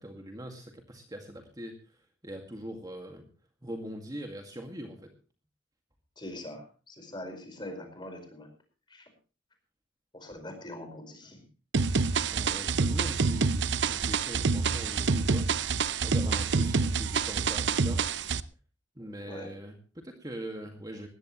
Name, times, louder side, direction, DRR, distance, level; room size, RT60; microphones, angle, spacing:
voice 1, 0.0-1.8 2.2-3.3 3.6-5.1 12.2-15.5 16.0-18.0 19.0-21.1, equal, 20° right, 4 dB, 2.1 m, -42 dB
voice 2, 6.2-8.5 8.9-9.0 10.1-11.4 19.3-19.5, left 1 dB, 25° left, 5 dB, 4.9 m, -43 dB
sound 1, 11.7-18.4, right 4 dB, 70° right, 0.7 m, -27 dB
20.0 x 15.5 x 3.1 m, 0.35 s
head